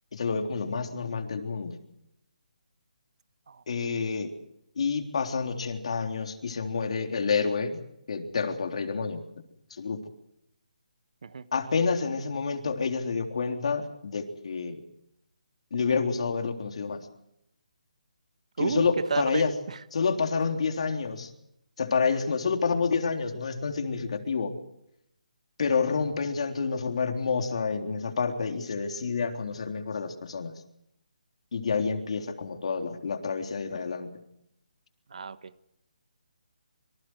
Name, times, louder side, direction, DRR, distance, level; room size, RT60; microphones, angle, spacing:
voice 1, 0.1-1.8 3.7-4.3 4.8-7.8 8.1-9.2 9.8-10.0 11.5-14.8 15.7-17.1 18.6-19.5 19.9-21.3 21.8-24.5 25.6-30.5 31.5-34.1, left 5 dB, 50° left, 4 dB, 3.6 m, -28 dB
voice 2, 3.5-3.9 11.2-11.5 18.6-19.8 35.1-35.5, right 5 dB, 50° right, 13 dB, 1.5 m, -32 dB
27.0 x 25.5 x 4.8 m, 0.79 s
hypercardioid pair, 170°, 4 cm